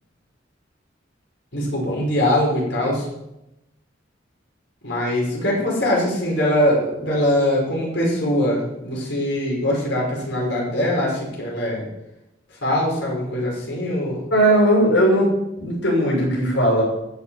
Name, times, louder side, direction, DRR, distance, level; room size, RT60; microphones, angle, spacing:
voice 1, 1.5-3.1 4.8-11.9 12.6-14.2, left 1 dB, 70° left, -3 dB, 6.0 m, -22 dB
voice 2, 14.3-16.8, right 1 dB, 85° left, -3 dB, 6.7 m, -18 dB
14.0 x 8.5 x 7.6 m, 0.88 s
head